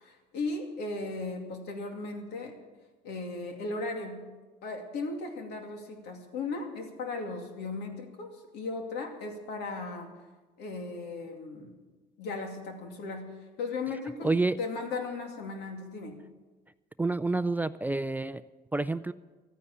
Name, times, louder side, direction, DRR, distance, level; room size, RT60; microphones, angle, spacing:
voice 1, 0.0-2.6 3.0-4.3 4.6-10.1 10.6-11.8 12.2-16.2, left 3 dB, 80° left, 3 dB, 2.5 m, -37 dB
voice 2, 14.2-14.6 17.0-18.4 18.7-19.1, right 3 dB, 10° right, 14 dB, 0.3 m, -28 dB
13.5 x 9.8 x 8.4 m, 1.3 s
cardioid pair, 110°, 17 cm